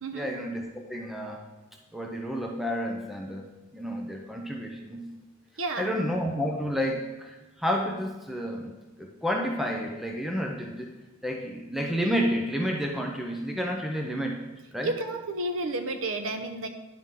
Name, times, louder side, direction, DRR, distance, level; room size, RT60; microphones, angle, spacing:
voice 1, 0.1-1.4 1.9-3.5 3.7-5.1 5.8-8.7 9.0-10.9 11.2-14.4 14.7-14.9, equal, ahead, 1 dB, 0.6 m, -30 dB
voice 2, 5.6-6.0 14.8-16.7, right 2 dB, 80° right, 6 dB, 0.8 m, -31 dB
10.5 x 6.0 x 3.7 m, 1.2 s
head